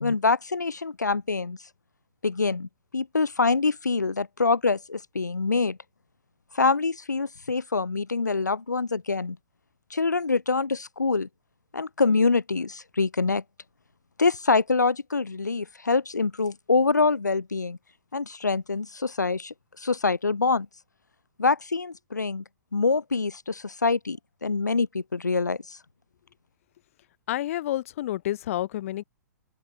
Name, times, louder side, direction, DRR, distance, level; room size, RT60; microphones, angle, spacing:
voice 1, 0.0-1.6 2.2-5.8 6.5-9.4 9.9-11.3 11.7-13.4 14.2-17.8 18.1-20.7 21.4-22.4 22.7-25.8, left 4 dB, 85° left, 0.7 m, -25 dB
voice 2, 27.3-29.0, left 13 dB, 50° left, 0.7 m, -29 dB
open air
figure-of-eight pair, 115°, 9 cm